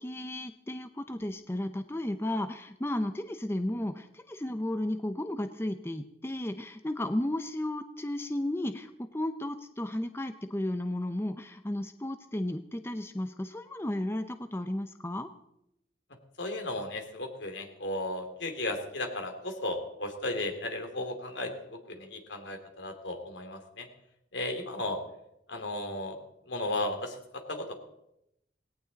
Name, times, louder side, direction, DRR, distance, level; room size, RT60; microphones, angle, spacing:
voice 1, 0.0-15.3, left 1 dB, 15° left, 9 dB, 0.7 m, -34 dB
voice 2, 16.4-23.9 24.3-25.0 25.5-26.2 26.5-27.7, left 2 dB, 80° left, 5 dB, 2.9 m, -35 dB
18.5 x 17.5 x 4.1 m, 0.82 s
head